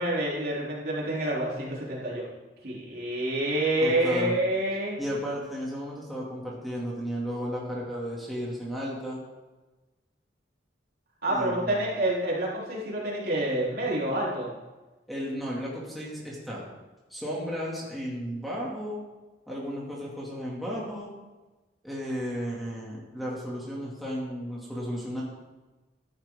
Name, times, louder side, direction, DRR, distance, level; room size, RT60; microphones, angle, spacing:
voice 1, 0.0-2.2 2.6-5.0 11.2-14.5, right 1 dB, 55° right, -5 dB, 3.3 m, -28 dB
voice 2, 3.8-4.4 5.0-9.2 11.3-11.8 15.1-16.6 17.1-19.0 19.5-21.1 21.8-25.2, equal, ahead, -5 dB, 2.4 m, -34 dB
13.0 x 10.5 x 3.7 m, 1.2 s
head